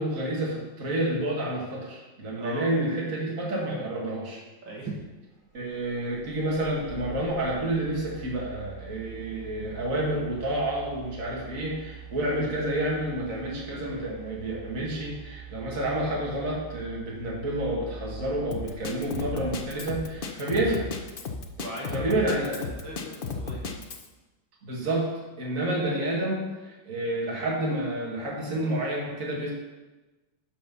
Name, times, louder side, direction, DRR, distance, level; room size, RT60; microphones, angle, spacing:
voice 1, 0.0-4.4 5.5-20.9 21.9-22.6 24.6-25.1 25.4-29.5, right 1 dB, 40° right, -4 dB, 2.5 m, -29 dB
voice 2, 2.4-2.7 4.6-4.9 21.6-23.6, right 2 dB, 70° right, -3 dB, 2.6 m, -38 dB
sound 1, 5.5-20.2, right 4 dB, 20° right, 3.2 m, -44 dB
Drum kit, 18.5-24.1, left 4 dB, 65° left, 0.5 m, -34 dB
11.5 x 5.7 x 5.5 m, 1.1 s
omnidirectional pair, 2.1 m